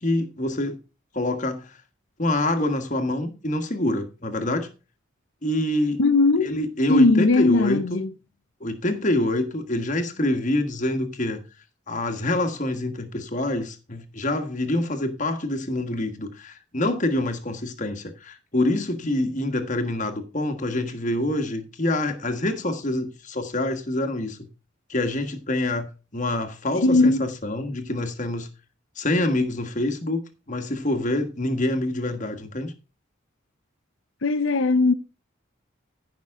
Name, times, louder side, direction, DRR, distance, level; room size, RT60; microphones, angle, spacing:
voice 1, 0.0-0.8 1.1-1.8 2.2-4.7 5.4-6.0 6.4-8.0 8.6-11.4 11.9-24.4 24.9-25.9 26.1-28.5 29.0-30.2 30.5-32.7, left 1 dB, 40° left, 1.5 m, -26 dB
voice 2, 6.0-6.5 6.9-8.1 26.8-27.3 34.2-34.9, left 3 dB, 80° left, 0.7 m, -19 dB
14.5 x 5.9 x 3.6 m
head